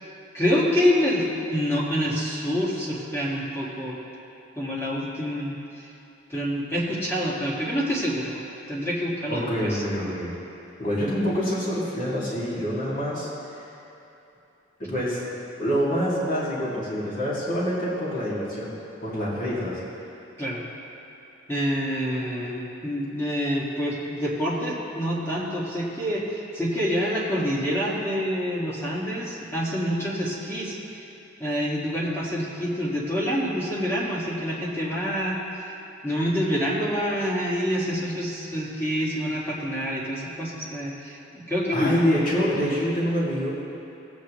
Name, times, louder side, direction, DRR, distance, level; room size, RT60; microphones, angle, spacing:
voice 1, 0.3-4.0 4.6-5.6 6.3-8.4 8.7-9.8 20.4-20.6 21.5-30.8 31.4-35.4 36.0-42.0, equal, 15° left, -6 dB, 1.8 m, -27 dB
voice 2, 9.3-10.3 10.8-13.3 14.8-15.2 15.6-18.7 19.0-19.8 41.7-43.5, equal, 45° left, -8 dB, 2.3 m, -26 dB
17.5 x 8.4 x 3.1 m, 2.9 s
head